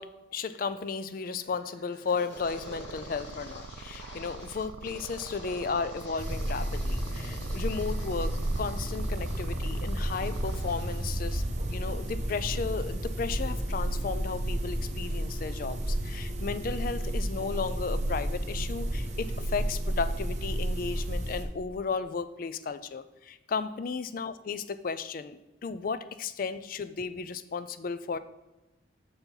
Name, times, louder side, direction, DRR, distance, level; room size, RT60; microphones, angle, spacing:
voice 1, 0.0-11.4 11.7-28.2, left 5 dB, 45° left, 13 dB, 0.3 m, -34 dB
sound 1, 1.4-11.0, equal, 75° left, 2.4 m, -49 dB
sound 2, 2.4-10.6, right 4 dB, 80° right, 0.4 m, -45 dB
sound 3, 6.2-21.4, right 1 dB, 35° right, 0.7 m, -32 dB
6.7 x 4.5 x 5.3 m, 1.1 s
head